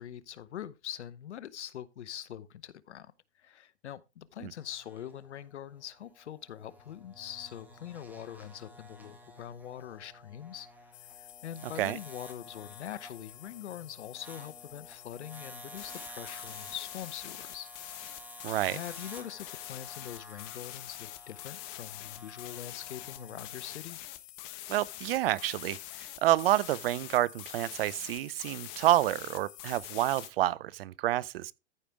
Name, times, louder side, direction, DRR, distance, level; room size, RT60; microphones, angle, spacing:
voice 1, 0.0-3.1 3.4-10.7 11.1-17.7 18.7-24.0, left 10 dB, 80° left, 0.9 m, -43 dB
sound 1, 4.5-23.8, equal, 5° right, 1.9 m, -52 dB
sound 2, 10.9-30.3, left 16 dB, 40° left, 1.1 m, -46 dB
voice 2, 18.4-18.8 24.7-25.8 26.2-31.5, right 15 dB, 60° right, 0.5 m, -28 dB
14.0 x 5.1 x 3.4 m
hypercardioid pair, 120°, 34 cm